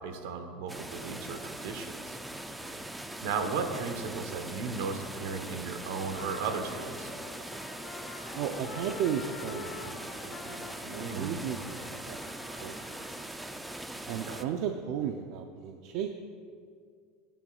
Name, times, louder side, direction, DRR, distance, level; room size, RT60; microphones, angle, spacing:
voice 1, 0.0-2.2 2.6-2.7 3.2-7.1 11.0-11.4 14.1-14.4, right 5 dB, 75° right, 6 dB, 1.1 m, -35 dB
sound 1, 0.7-14.4, right 1 dB, 5° right, 0.4 m, -41 dB
Trumpet, 6.1-13.3, left 6 dB, 35° left, 0.9 m, -47 dB
voice 2, 8.3-13.2 14.1-16.1, right 8 dB, 60° right, 5 dB, 0.5 m, -35 dB
17.0 x 9.0 x 2.4 m, 2.2 s
supercardioid pair, 140°, 0 cm